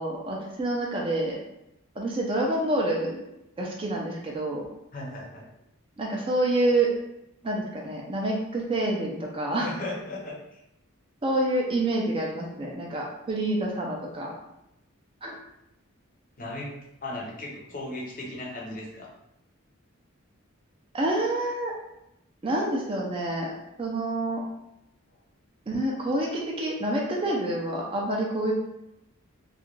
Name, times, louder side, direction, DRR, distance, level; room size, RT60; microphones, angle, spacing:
voice 1, 0.0-1.4 2.0-3.2 3.6-4.7 6.0-6.9 7.4-9.7 11.2-14.3 15.2-15.3 20.9-21.7 22.4-23.5 23.8-24.4 25.7-28.5, right 1 dB, 25° right, -1 dB, 0.3 m, -27 dB
voice 2, 4.9-5.5 9.6-10.6 16.4-16.7 17.0-19.1, left 2 dB, 40° left, -2 dB, 0.6 m, -36 dB
2.4 x 2.1 x 3.0 m, 0.84 s
head